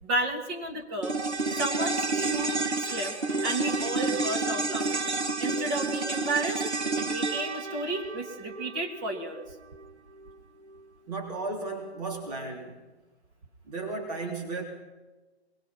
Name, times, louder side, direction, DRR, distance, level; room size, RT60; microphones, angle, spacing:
voice 1, 0.0-1.2 1.5-2.6 2.9-3.2 3.4-5.1 5.4-6.6 6.9-9.4, right 2 dB, 20° right, 0 dB, 2.7 m, -32 dB
sound 1, 1.0-9.5 9.8-9.9, right 3 dB, 80° right, 2.2 m, -30 dB
voice 2, 11.1-12.8 13.7-14.6, right 3 dB, 35° right, -1 dB, 3.7 m, -34 dB
23.5 x 22.5 x 5.9 m, 1.2 s
figure-of-eight pair, 150°, 33 cm